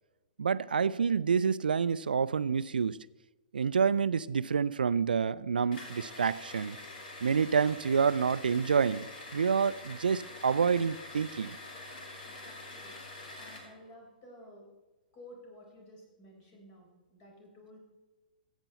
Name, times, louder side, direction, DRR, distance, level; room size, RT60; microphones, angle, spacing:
voice 1, 0.4-3.0 3.5-6.8 7.2-11.6, right 6 dB, 80° right, 0.4 m, -28 dB
sound 1, 5.7-13.7, left 2 dB, 65° left, 2.7 m, -46 dB
voice 2, 12.2-12.9 13.4-14.7 15.1-17.8, left 1 dB, 40° left, 4.3 m, -53 dB
14.0 x 8.1 x 4.1 m
figure-of-eight pair, 115°, 5 cm